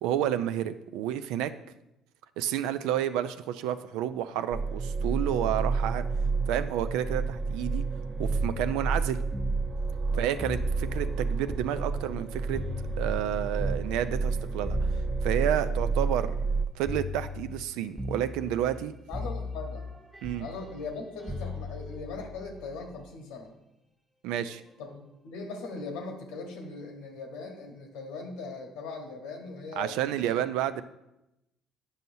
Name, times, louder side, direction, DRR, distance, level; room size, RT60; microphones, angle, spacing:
voice 1, 0.0-1.5 2.4-6.1 6.5-7.8 8.2-9.2 10.2-12.6 13.0-14.8 15.2-16.3 16.8-18.9 20.2-20.5 24.2-24.6 29.8-30.8, right 11 dB, 85° right, 12 dB, 0.3 m, -30 dB
sound 1, 4.5-16.6, right 4 dB, 30° right, 0.5 m, -30 dB
sound 2, 8.3-12.2 12.5-16.6 16.9-17.7 18.0-18.9 19.1-23.1 24.3-24.6, left 2 dB, 10° right, 1.0 m, -38 dB
voice 2, 19.1-19.8 20.4-23.5 24.8-30.0 30.3-30.4, left 3 dB, 90° left, 3 dB, 1.1 m, -40 dB
9.0 x 5.5 x 2.7 m, 0.88 s
supercardioid pair, 85°, 0 cm